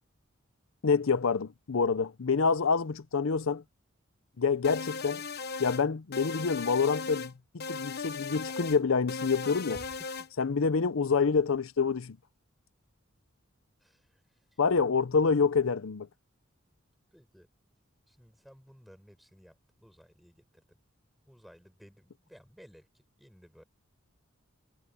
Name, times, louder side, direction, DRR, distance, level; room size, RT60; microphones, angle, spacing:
voice 1, 0.8-3.6 4.4-5.2 5.6-9.8 10.4-12.2 14.6-16.1, left 5 dB, 80° left, 0.6 m, -27 dB
sound 1, 4.6-5.8 6.1-7.3 7.6-8.8 9.1-10.3, left 4 dB, 50° left, 1.1 m, -37 dB
voice 2, 9.7-10.5 13.8-14.2 14.5-14.6 17.1-17.5 18.1-20.8 21.3-22.9 23.2-23.6, equal, ahead, 7.6 m, -55 dB
head